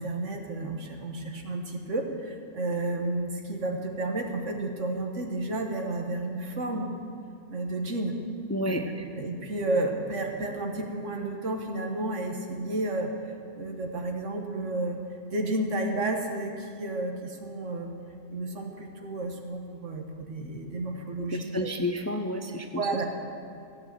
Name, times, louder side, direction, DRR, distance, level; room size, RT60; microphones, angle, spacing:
voice 1, 0.0-6.9 7.5-8.2 8.7-8.8 9.2-15.0 15.3-17.9 18.3-21.8 22.8-23.0, right 2 dB, 85° right, 3 dB, 1.7 m, -31 dB
voice 2, 8.5-9.0 21.2-22.8, left 1 dB, 20° left, 5 dB, 0.5 m, -31 dB
15.0 x 8.6 x 7.6 m, 2.5 s
omnidirectional pair, 1.2 m